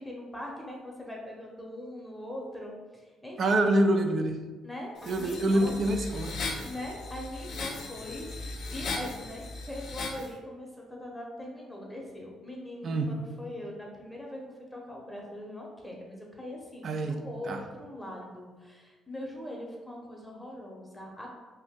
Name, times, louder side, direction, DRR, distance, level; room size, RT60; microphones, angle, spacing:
voice 1, 0.0-3.7 4.6-5.7 6.6-14.4 14.7-21.3, left 1 dB, 5° left, -1 dB, 0.8 m, -41 dB
voice 2, 3.4-4.4 5.1-6.4 12.8-13.1 16.8-17.6, right 1 dB, 55° right, 5 dB, 0.4 m, -26 dB
sound 1, 5.0-10.3, left 3 dB, 65° left, 0.5 m, -38 dB
2.7 x 2.5 x 3.6 m, 1.3 s
supercardioid pair, 70°, 0 cm